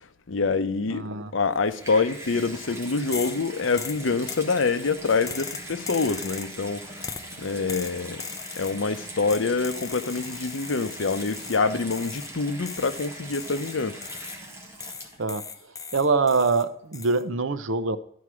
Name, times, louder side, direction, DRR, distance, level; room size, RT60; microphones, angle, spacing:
voice 1, 0.3-7.1 7.4-8.2 8.6-14.0, left 4 dB, 80° left, 0.7 m, -26 dB
voice 2, 0.9-1.3 15.2-15.4 15.9-18.0, right 4 dB, 80° right, 0.7 m, -24 dB
Water tap faucet / Bathtub (filling or washing), 1.4-15.5 16.2-16.3, right 1 dB, 15° right, 1.8 m, -41 dB
sound 1, 3.1-3.4 3.8-4.5 5.3-6.6 7.0-7.3 7.7-8.8 9.3-11.6 11.9-12.3 12.7-14.4 14.8-16.6 16.9-17.2, left 6 dB, 20° left, 0.6 m, -38 dB
11.5 x 4.7 x 6.1 m
head